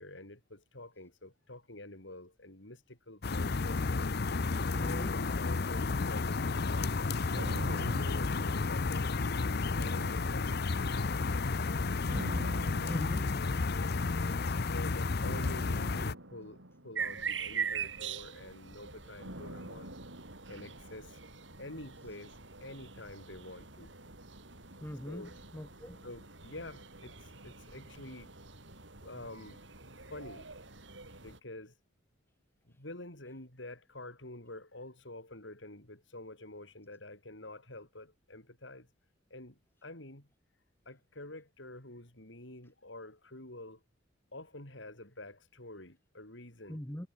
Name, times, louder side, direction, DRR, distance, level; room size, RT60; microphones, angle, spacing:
voice 1, 0.0-4.1 4.6-6.3 6.6-9.1 9.4-12.1 12.4-13.0 13.4-14.2 14.7-19.9 20.5-21.2 21.6-23.9 25.0-25.3 26.0-28.3 29.0-29.6 30.1-30.5 31.2-31.7 32.6-38.9 39.3-40.3 40.8-43.8 44.3-46.8, left 2 dB, 75° left, 6.3 m, -48 dB
sound 1, 3.2-16.1, left 3 dB, 55° left, 0.7 m, -32 dB
voice 2, 4.7-5.1 12.8-13.2 24.8-26.0 46.7-47.1, equal, 10° left, 1.3 m, -40 dB
sound 2, 7.3-9.3 9.8-11.0 12.1-13.8 15.2-17.6 19.2-21.4 21.7-21.8, right 1 dB, 90° right, 5.7 m, -46 dB
sound 3, 17.0-31.4, right 6 dB, 75° right, 6.6 m, -43 dB
head